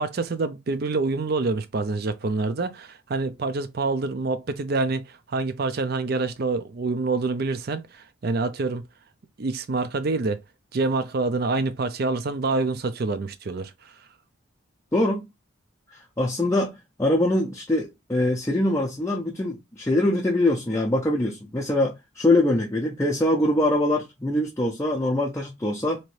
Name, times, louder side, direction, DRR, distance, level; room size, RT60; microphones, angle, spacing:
voice 1, 0.0-8.8 9.4-10.4 10.7-13.9, right 3 dB, 45° right, 0.4 m, -26 dB
voice 2, 14.9-15.3 15.9-16.7 17.0-26.0, left 1 dB, 15° left, 0.5 m, -23 dB
2.8 x 2.6 x 3.1 m
head